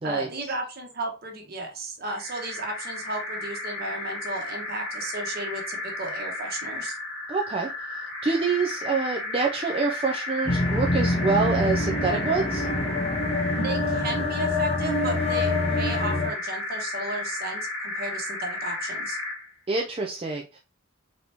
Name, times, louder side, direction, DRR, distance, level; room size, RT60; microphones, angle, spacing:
voice 1, 0.0-6.9 13.6-19.2, right 2 dB, 45° right, 2 dB, 1.1 m, -34 dB
sound 1, 2.1-19.5, left 2 dB, 80° left, 1.7 m, -34 dB
voice 2, 7.3-12.7 19.7-20.6, right 4 dB, 25° right, 0 dB, 0.4 m, -26 dB
sound 2, 10.5-16.3, left 2 dB, 30° left, 0.7 m, -26 dB
4.1 x 2.9 x 3.3 m, 0.30 s
head